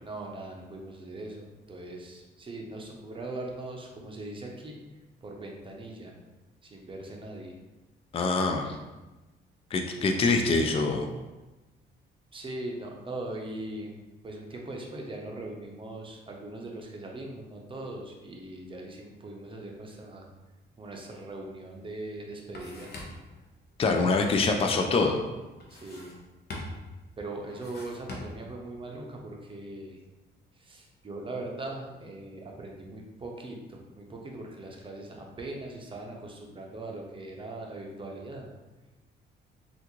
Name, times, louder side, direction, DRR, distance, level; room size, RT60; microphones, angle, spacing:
voice 1, 0.0-4.8 5.2-6.1 6.6-7.6 12.3-13.9 14.2-20.2 20.8-22.9 25.7-26.2 27.2-30.0 30.6-38.5, right 2 dB, 25° right, 0 dB, 0.7 m, -40 dB
voice 2, 8.1-8.8 9.7-11.1 23.8-25.2, left 3 dB, 30° left, 4 dB, 0.4 m, -25 dB
sound 1, 21.7-21.8 22.1-23.4 25.6-26.3 26.5-27.0 27.5-28.5, left 2 dB, 55° left, 0.8 m, -42 dB
3.4 x 2.5 x 3.0 m, 1.1 s
cardioid pair, 90°, 20 cm